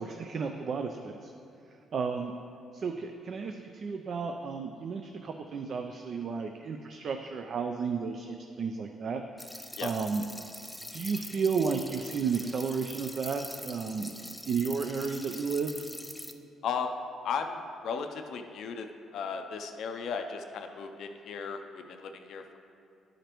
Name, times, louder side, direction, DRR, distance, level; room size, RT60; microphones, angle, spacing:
voice 1, 0.0-1.3 1.9-2.3 2.7-9.5 9.8-10.2 10.9-14.1 14.5-15.8, right 5 dB, 55° right, 5 dB, 0.4 m, -33 dB
sound 1, 9.4-16.3, left 1 dB, 5° left, 0.5 m, -43 dB
voice 2, 16.6-17.0 17.2-22.6, left 6 dB, 75° left, 5 dB, 0.5 m, -36 dB
11.0 x 5.0 x 3.0 m, 2.6 s
cardioid pair, 90°, 0 cm